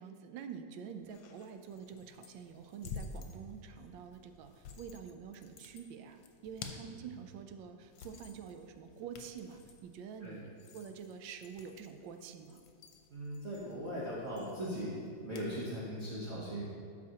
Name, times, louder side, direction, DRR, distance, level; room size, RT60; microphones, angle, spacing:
voice 1, 0.0-12.6, right 7 dB, 90° right, 7 dB, 1.3 m, -47 dB
sound 1, 1.0-15.5, left 4 dB, 80° left, 1.4 m, -52 dB
voice 2, 13.1-16.6, equal, 50° right, -7 dB, 1.2 m, -39 dB
12.5 x 4.7 x 2.8 m, 2.5 s
omnidirectional pair, 2.0 m